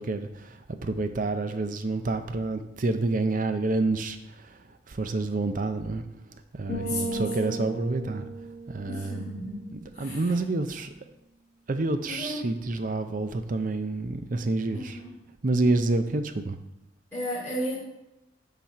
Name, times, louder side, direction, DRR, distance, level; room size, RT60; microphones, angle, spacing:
voice 1, 0.0-4.6 4.9-6.0 6.5-8.3 8.7-9.3 9.7-10.9 11.7-15.0 15.4-16.6, right 2 dB, 40° right, 8 dB, 0.5 m, -28 dB
sound 1, 6.7-10.4, right 2 dB, 55° left, 2.6 m, -36 dB
voice 2, 6.8-7.7 8.9-10.3 12.2-12.4 14.7-15.1 17.1-17.8, left 1 dB, 10° left, -13 dB, 2.5 m, -35 dB
7.3 x 4.1 x 5.7 m, 0.90 s
head